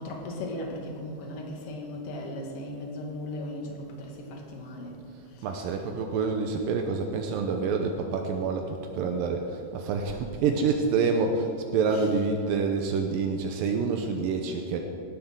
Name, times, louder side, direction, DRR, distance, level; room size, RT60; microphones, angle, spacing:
voice 1, 0.0-5.0 5.3-5.5 11.9-12.0, left 1 dB, 50° left, 0 dB, 2.0 m, -37 dB
voice 2, 5.4-14.8, right 5 dB, 90° right, 4 dB, 2.0 m, -27 dB
18.0 x 12.0 x 3.8 m, 2.6 s
omnidirectional pair, 5.1 m